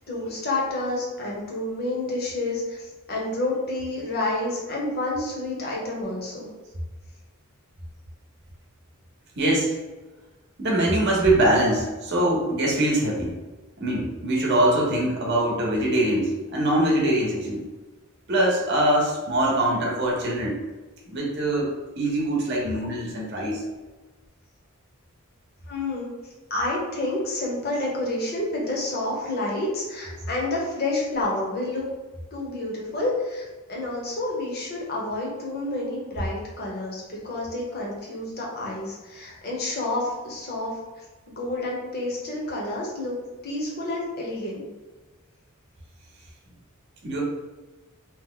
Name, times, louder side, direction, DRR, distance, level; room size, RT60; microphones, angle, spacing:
voice 1, 0.1-2.8 3.1-6.5 25.7-26.1 26.5-31.8 32.3-40.7 41.4-43.1 43.4-44.7, left 2 dB, 45° left, -3 dB, 0.8 m, -29 dB
voice 2, 9.4-9.7 10.6-13.4 13.8-17.6 18.3-20.6 21.1-21.7 22.0-23.6 47.0-47.2, right 1 dB, 50° right, -2 dB, 0.8 m, -23 dB
2.8 x 2.1 x 3.8 m, 1.2 s
head